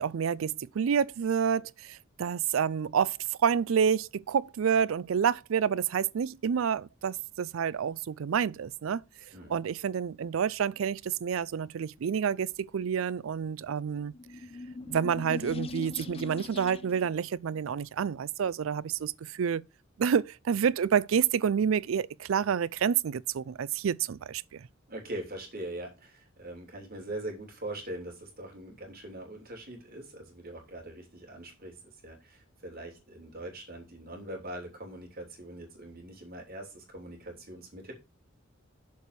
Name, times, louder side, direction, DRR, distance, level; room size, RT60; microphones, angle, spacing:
voice 1, 0.0-3.2 3.4-9.0 9.5-14.1 14.9-19.6 20.0-24.6, right 7 dB, 80° right, 0.4 m, -28 dB
sound 1, 14.1-17.1, left 3 dB, 30° left, 0.6 m, -40 dB
voice 2, 24.9-37.9, right 1 dB, 50° right, 3.1 m, -42 dB
7.0 x 4.6 x 6.7 m
head